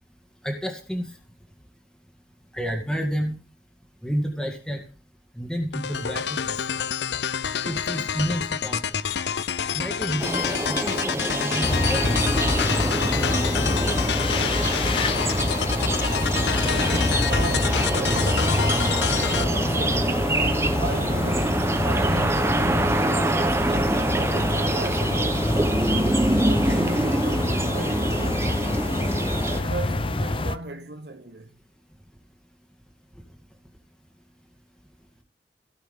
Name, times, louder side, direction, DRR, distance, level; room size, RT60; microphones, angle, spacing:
voice 1, 0.4-1.1 2.5-3.4 4.0-4.8 5.4-6.8 7.6-9.0 9.7-12.1 12.6-12.9, equal, 5° left, 1.9 m, -30 dB
sound 1, 5.7-19.4, left 8 dB, 75° left, 0.5 m, -28 dB
sound 2, 10.2-29.6, right 1 dB, 15° right, 0.9 m, -26 dB
sound 3, 11.6-30.6, left 2 dB, 30° left, 0.7 m, -26 dB
voice 2, 16.5-18.9 19.3-20.2 20.8-25.5 26.5-28.7 29.5-31.5, right 2 dB, 70° right, 1.2 m, -36 dB
17.0 x 5.9 x 3.7 m
head